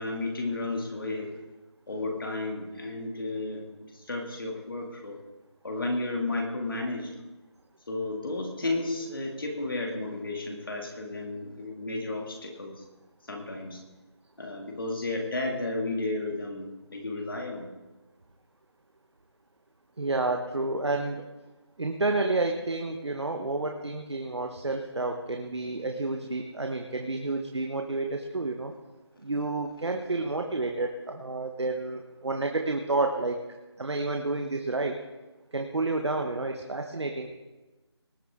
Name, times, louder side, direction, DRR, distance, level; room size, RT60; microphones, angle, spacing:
voice 1, 0.0-1.4 1.9-5.2 5.6-7.1 7.9-12.8 13.3-13.8 14.4-17.7, left 2 dB, 50° left, 1 dB, 2.5 m, -33 dB
voice 2, 20.0-21.2 21.8-28.7 29.2-33.4 33.8-35.0 35.5-37.3, right 2 dB, 75° right, 3 dB, 1.3 m, -30 dB
19.5 x 9.4 x 3.7 m, 1.1 s
figure-of-eight pair, 175°, 14 cm